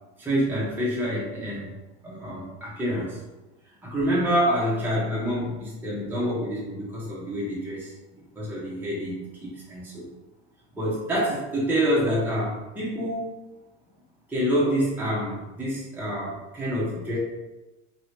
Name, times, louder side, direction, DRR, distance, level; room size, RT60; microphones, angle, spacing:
voice 1, 0.2-1.7 2.0-3.2 3.8-7.9 8.3-9.1 9.4-10.1 10.7-13.2 14.3-17.2, equal, 5° right, -8 dB, 1.1 m, -27 dB
2.9 x 2.9 x 2.8 m, 1.1 s
hypercardioid pair, 90°, 36 cm